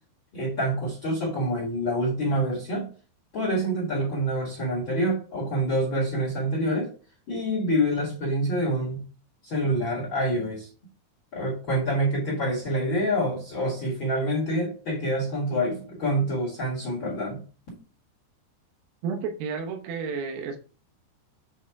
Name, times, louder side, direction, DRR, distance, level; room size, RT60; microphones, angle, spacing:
voice 1, 0.3-2.9 3.3-6.9 7.3-9.0 9.4-10.7 11.3-17.4, right 1 dB, 50° left, -2 dB, 1.4 m, -26 dB
voice 2, 19.0-20.6, right 5 dB, 70° right, 2 dB, 2.5 m, -31 dB
7.6 x 3.6 x 4.7 m, 0.38 s
omnidirectional pair, 4.7 m